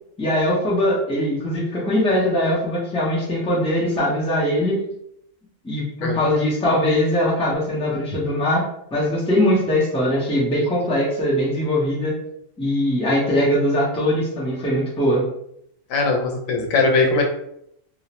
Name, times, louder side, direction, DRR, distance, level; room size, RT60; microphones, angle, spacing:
voice 1, 0.2-4.8 5.6-8.6 8.9-12.2 12.6-15.2, left 1 dB, 5° left, -6 dB, 0.5 m, -21 dB
voice 2, 15.9-17.2, left 3 dB, 80° left, 1 dB, 1.0 m, -20 dB
2.4 x 2.0 x 2.8 m, 0.73 s
omnidirectional pair, 1.3 m